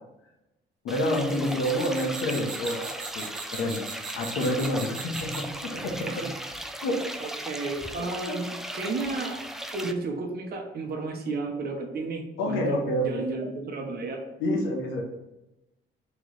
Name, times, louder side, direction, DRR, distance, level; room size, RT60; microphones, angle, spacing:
voice 1, 0.8-3.8 4.1-6.3 6.8-7.0 8.3-8.4 12.4-13.2 14.4-15.0, left 1 dB, 85° left, 2 dB, 0.9 m, -28 dB
sound 1, 0.9-9.9, right 1 dB, ahead, 0.3 m, -37 dB
sound 2, 1.0-5.6, right 5 dB, 70° right, 1.1 m, -40 dB
voice 2, 7.2-9.4 9.7-14.2, right 3 dB, 50° right, 2 dB, 0.8 m, -33 dB
3.1 x 3.0 x 3.9 m, 0.96 s
cardioid pair, 90°, 20 cm